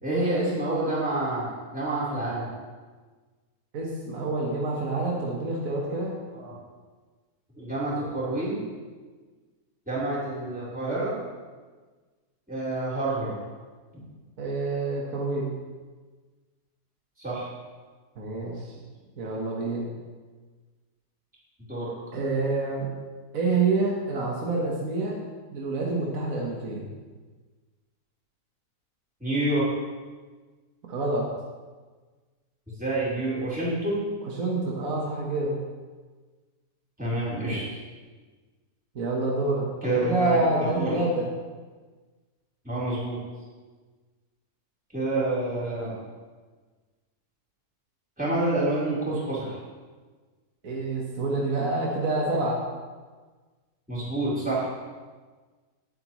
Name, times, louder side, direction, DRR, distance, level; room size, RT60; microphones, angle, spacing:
voice 1, 0.0-2.5 6.3-6.6 7.6-8.6 9.9-11.2 12.5-13.4 17.2-17.5 21.7-21.9 29.2-29.7 32.8-34.0 37.0-37.6 39.8-41.0 42.6-43.2 44.9-46.0 48.2-49.6 53.9-54.7, right 2 dB, 5° right, -9 dB, 3.8 m, -28 dB
voice 2, 3.7-6.1 14.4-15.5 18.2-18.7 19.2-19.9 22.1-22.9 23.3-25.2 25.5-26.9 30.9-31.3 34.4-35.6 39.0-39.7 40.0-41.3 45.1-45.5 50.6-52.6, right 2 dB, 60° right, -2 dB, 1.8 m, -27 dB
19.0 x 8.0 x 3.1 m, 1.4 s
omnidirectional pair, 1.7 m